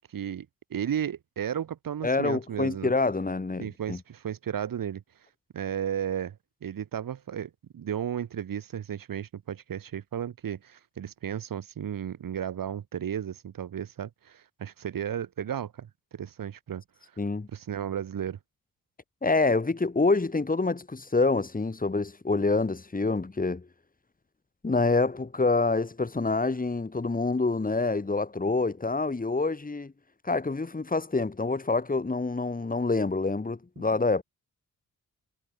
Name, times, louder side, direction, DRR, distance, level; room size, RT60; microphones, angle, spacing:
voice 1, 0.1-0.5 0.7-2.9 3.6-5.0 5.5-6.3 6.6-16.8 17.5-18.4, right 9 dB, 75° right, 6.0 m, -34 dB
voice 2, 2.0-4.0 17.2-17.5 19.2-23.6 24.6-29.9 30.2-34.2, left 3 dB, 25° left, 6.1 m, -26 dB
cardioid pair, 95°, 34 cm